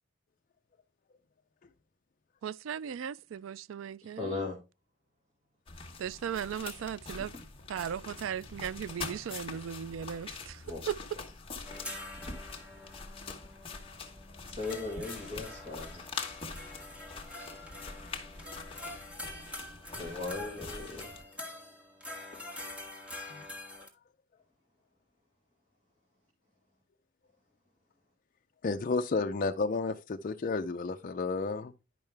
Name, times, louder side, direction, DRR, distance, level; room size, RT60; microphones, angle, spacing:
voice 1, 2.4-4.3 6.0-7.3 7.7-10.6 10.9-11.0, right 8 dB, 80° right, 0.3 m, -37 dB
voice 2, 4.0-4.6 7.3-7.4 10.6-10.8 11.1-11.2 14.4-16.1 19.9-21.1, left 3 dB, 30° right, 2.4 m, -38 dB
sound 1, 5.7-21.2, left 4 dB, 30° left, 1.3 m, -44 dB
sound 2, 11.7-23.9, left 1 dB, 5° right, 1.8 m, -45 dB
voice 3, 28.6-31.7, left 3 dB, 45° left, 0.5 m, -32 dB
10.5 x 5.5 x 3.3 m
head